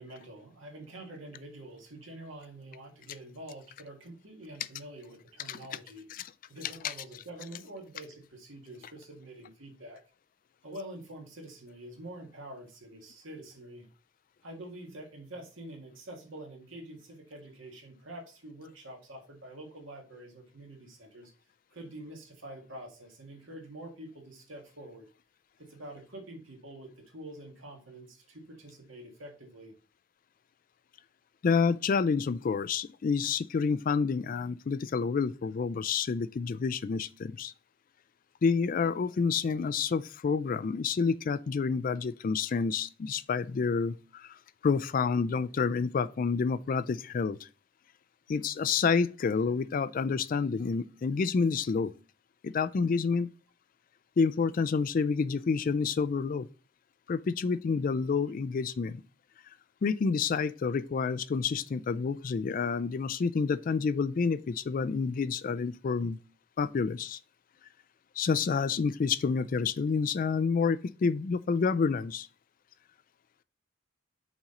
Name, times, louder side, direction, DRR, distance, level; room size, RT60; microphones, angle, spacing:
voice 1, 0.0-6.1 6.5-10.0 10.6-13.9 14.4-21.3 21.7-25.1 25.6-29.8 58.2-58.3, right 1 dB, 70° right, 1.8 m, -46 dB
voice 2, 31.4-37.5 38.4-44.4 44.6-47.4 48.3-51.9 52.4-53.3 54.2-56.5 57.1-59.0 59.8-66.2 66.6-67.2 68.2-72.3, left 5 dB, 45° left, 0.3 m, -29 dB
5.9 x 4.2 x 3.7 m
head